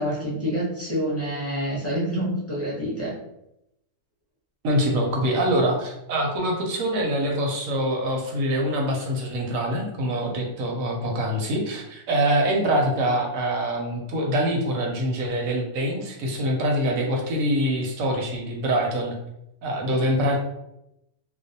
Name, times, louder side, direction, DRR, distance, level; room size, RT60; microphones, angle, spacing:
voice 1, 0.0-3.1, equal, 15° left, -7 dB, 0.6 m, -27 dB
voice 2, 4.6-19.2 19.6-20.4, equal, 85° right, 1 dB, 1.0 m, -24 dB
2.5 x 2.0 x 2.6 m, 0.84 s
omnidirectional pair, 1.4 m